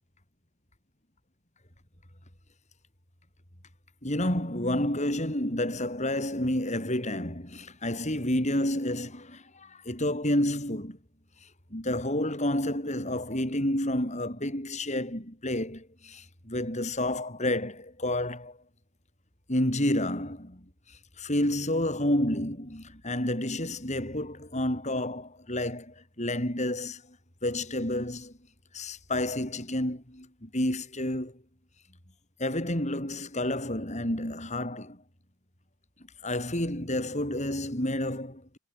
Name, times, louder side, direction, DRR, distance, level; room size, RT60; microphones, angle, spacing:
voice 1, 4.0-11.0 11.7-18.6 19.5-20.7 21.2-27.2 27.4-28.3 28.7-31.4 32.4-35.0 36.2-38.6, left 1 dB, 30° left, 7.2 m, -30 dB
head